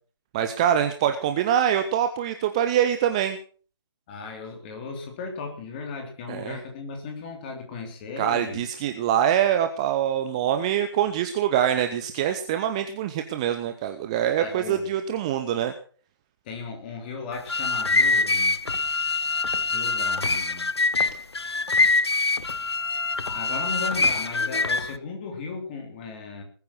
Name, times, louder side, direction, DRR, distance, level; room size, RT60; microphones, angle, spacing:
voice 1, 0.3-3.4 6.3-6.6 8.2-15.7, right 10 dB, 15° right, 8 dB, 0.7 m, -24 dB
voice 2, 4.1-8.6 14.4-14.8 16.5-18.5 19.7-20.9 23.3-26.4, left 4 dB, 20° left, 3 dB, 3.5 m, -36 dB
sound 1, 17.3-25.0, left 3 dB, 70° left, 0.8 m, -24 dB
20.0 x 9.4 x 6.3 m, 0.43 s
figure-of-eight pair, 150°, 14 cm